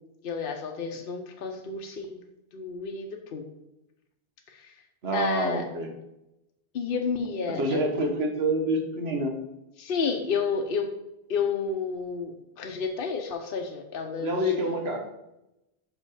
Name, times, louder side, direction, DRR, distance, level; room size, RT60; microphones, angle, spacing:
voice 1, 0.2-2.2 2.5-3.1 3.3-3.4 4.6-4.7 5.1-5.6 6.7-7.9 9.8-10.9 11.3-12.3 12.6-14.5, left 5 dB, 65° left, 3 dB, 0.9 m, -30 dB
voice 2, 5.0-5.9 7.5-9.3 14.2-15.0, right 1 dB, 80° right, 3 dB, 1.4 m, -27 dB
5.6 x 5.4 x 4.8 m, 0.90 s
omnidirectional pair, 1.0 m